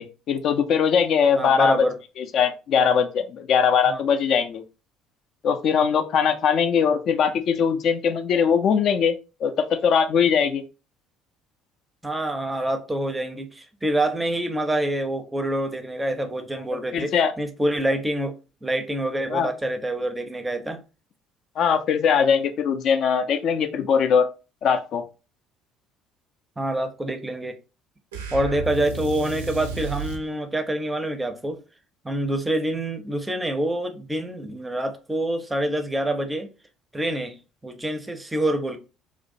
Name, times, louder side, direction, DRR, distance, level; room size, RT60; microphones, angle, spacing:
voice 1, 0.0-1.8 2.2-4.6 5.4-10.6 16.9-17.3 19.3-19.5 21.6-24.3 24.6-25.0, left 7 dB, 50° left, 0.3 m, -21 dB
voice 2, 1.3-2.0 3.9-4.0 12.0-20.8 26.6-27.6 28.3-31.6 32.0-36.5 36.9-37.4 37.6-38.8, right 1 dB, 10° right, 0.5 m, -26 dB
sound 1, 28.1-30.3, right 6 dB, 75° right, 0.4 m, -32 dB
2.4 x 2.1 x 2.5 m
figure-of-eight pair, 55°, 0 cm